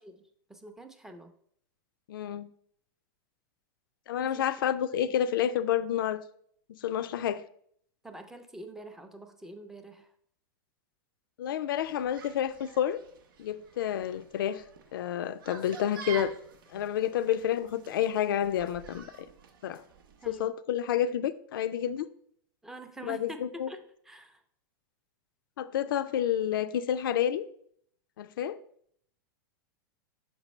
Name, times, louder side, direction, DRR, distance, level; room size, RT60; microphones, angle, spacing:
voice 1, 0.5-1.3 4.2-4.5 4.9-5.1 8.0-10.1 20.2-20.5 22.6-23.8 24.1-24.4, right 2 dB, 5° right, 0.5 m, -45 dB
voice 2, 2.1-2.5 4.1-6.2 6.7-7.4 11.4-13.0 13.4-14.6 14.9-16.3 16.7-19.3 19.6-19.8 20.3-22.1 23.0-23.7 25.6-27.5 28.2-28.6, left 10 dB, 80° left, 0.4 m, -29 dB
sound 1, 11.8-20.4, right 6 dB, 85° right, 0.7 m, -48 dB
6.0 x 5.2 x 3.1 m
supercardioid pair, 135°, 11 cm